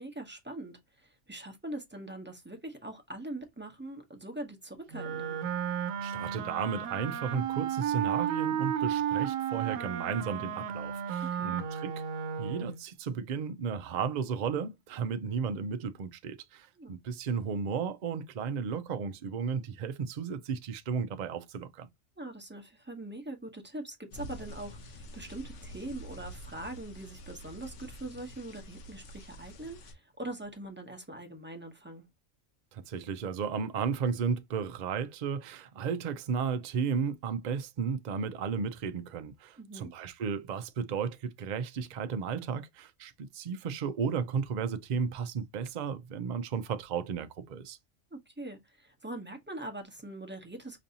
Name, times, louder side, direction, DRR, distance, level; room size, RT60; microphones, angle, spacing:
voice 1, 0.0-5.4 11.3-11.6 16.8-17.0 22.2-32.0 39.6-39.9 48.1-50.8, right 1 dB, 10° right, 0.7 m, -42 dB
Wind instrument woodwind instrument, 4.9-12.8, right 9 dB, 90° right, 1.0 m, -33 dB
voice 2, 6.0-11.9 12.4-21.9 32.7-47.8, right 6 dB, 55° right, 0.5 m, -34 dB
sound 1, 24.1-29.9, equal, 70° left, 1.1 m, -47 dB
5.2 x 2.7 x 2.7 m
omnidirectional pair, 1.4 m